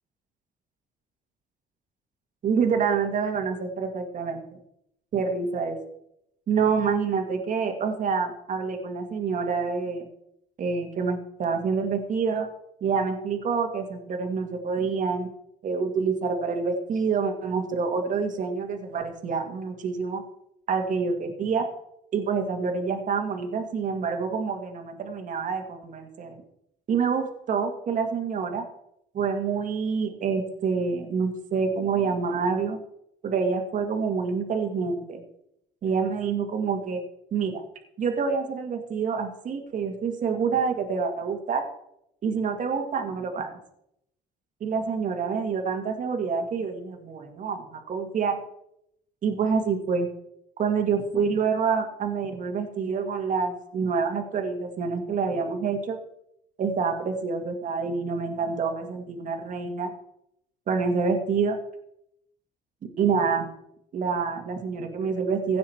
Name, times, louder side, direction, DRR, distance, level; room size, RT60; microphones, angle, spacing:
voice 1, 2.4-4.4 5.1-5.8 6.5-10.0 10.6-12.5 12.8-15.3 15.6-20.2 20.7-21.7 22.1-26.4 26.9-28.7 29.1-32.8 33.2-35.2 35.8-37.0 37.3-37.6 38.0-41.6 42.2-43.6 44.6-48.4 49.2-50.1 50.6-56.0 56.6-59.9 60.7-61.6 63.0-63.5 63.9-65.6, right 5 dB, 50° right, 4 dB, 1.9 m, -27 dB
16.0 x 6.4 x 4.4 m, 0.78 s
cardioid pair, 110°, 17 cm